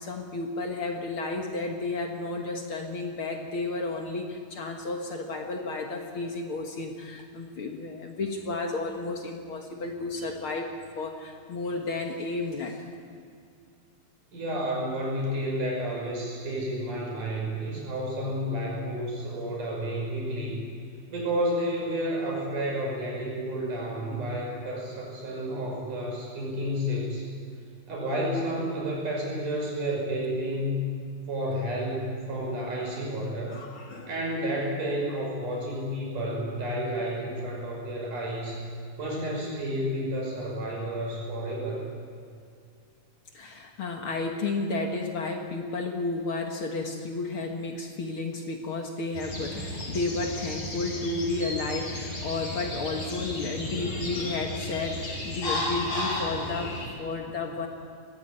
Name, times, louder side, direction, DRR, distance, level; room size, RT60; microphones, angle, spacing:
voice 1, 0.0-12.9 32.4-32.5 33.5-34.1 43.3-57.7, left 3 dB, 50° left, 3 dB, 2.0 m, -32 dB
voice 2, 14.3-20.6 21.1-27.3 27.9-30.8 31.3-33.6 34.1-38.6 39.0-41.8, equal, 90° right, -2 dB, 7.0 m, -31 dB
sound 1, 49.1-56.9, left 1 dB, 70° left, 6.1 m, -34 dB
20.5 x 15.5 x 8.9 m, 2.3 s
omnidirectional pair, 3.5 m